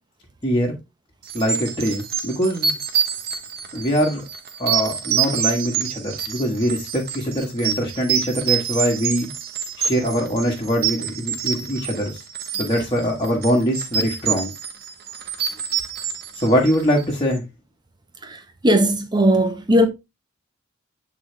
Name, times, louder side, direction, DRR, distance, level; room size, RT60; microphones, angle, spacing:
voice 1, 0.4-0.8 1.3-2.8 3.7-4.2 4.6-9.3 9.8-12.2 12.6-14.5 16.3-17.4, equal, 25° left, 1.5 m, -22 dB
sound 1, 1.3-17.1, right 8 dB, 50° right, 1.0 m, -27 dB
voice 2, 18.6-19.9, equal, 20° right, 1.0 m, -17 dB
8.5 x 3.9 x 3.3 m
head